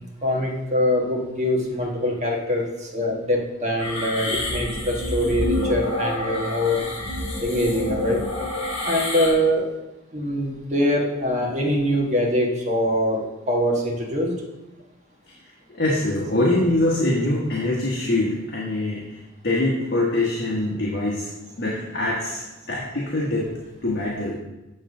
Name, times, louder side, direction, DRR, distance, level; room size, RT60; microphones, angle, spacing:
voice 1, 0.2-2.7 2.9-6.8 7.4-8.2 8.8-9.7 10.1-14.3, left 1 dB, 35° right, -1 dB, 1.5 m, -23 dB
sound 1, 3.8-9.3, left 1 dB, 30° left, 2.4 m, -28 dB
voice 2, 15.7-21.3 21.6-23.5 23.8-24.4, left 1 dB, 50° left, -4 dB, 1.3 m, -24 dB
8.1 x 3.7 x 6.0 m, 1.0 s
head